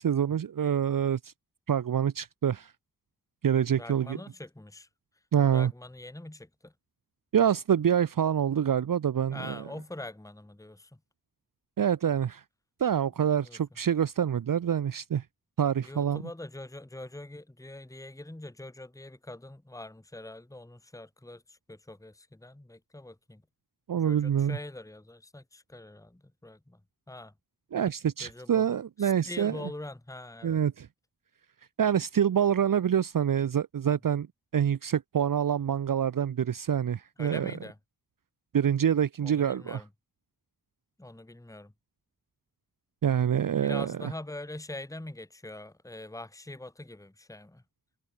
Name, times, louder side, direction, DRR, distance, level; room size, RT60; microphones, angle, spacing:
voice 1, 0.0-1.3 1.7-2.7 3.4-4.2 5.3-5.7 7.3-9.6 11.8-12.4 12.8-15.2 15.6-16.2 23.9-24.6 27.7-29.6 30.4-30.9 31.8-34.3 34.5-37.5 38.5-39.8 43.0-43.9, right 8 dB, 65° right, 0.6 m, -26 dB
voice 2, 3.8-4.9 5.5-6.7 9.3-11.0 13.4-13.6 15.8-23.4 23.9-26.8 27.1-27.3 28.2-28.7 29.0-30.6 37.2-37.8 39.2-39.9 41.0-41.7 43.6-47.6, left 1 dB, 10° left, 1.4 m, -43 dB
wide cardioid pair, 80°, 36 cm